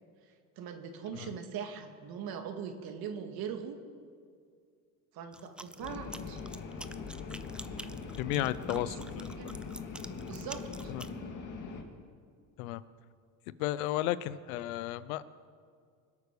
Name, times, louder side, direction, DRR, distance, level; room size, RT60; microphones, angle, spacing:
voice 1, 0.6-3.8 5.1-6.4 8.7-9.6 10.3-10.9, right 7 dB, 60° right, 6 dB, 2.2 m, -41 dB
sound 1, 5.3-11.1, right 1 dB, ahead, 0.5 m, -47 dB
sound 2, 5.8-11.8, left 5 dB, 45° left, 2.8 m, -42 dB
voice 2, 8.2-9.4 10.9-11.1 12.6-12.8 13.6-15.2, left 14 dB, 85° left, 17 dB, 0.8 m, -33 dB
24.5 x 8.3 x 6.8 m, 2.2 s
supercardioid pair, 105°, 41 cm